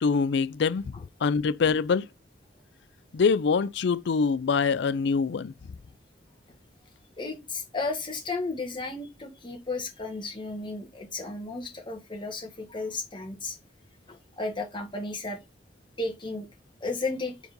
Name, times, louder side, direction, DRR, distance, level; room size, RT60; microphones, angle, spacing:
voice 1, 0.0-0.8 1.2-2.1 3.1-5.5, left 5 dB, 65° left, 0.4 m, -24 dB
voice 2, 7.2-13.6 14.1-15.4 16.0-16.5 16.8-17.3, left 3 dB, 25° left, 1.6 m, -34 dB
4.9 x 3.9 x 5.2 m
head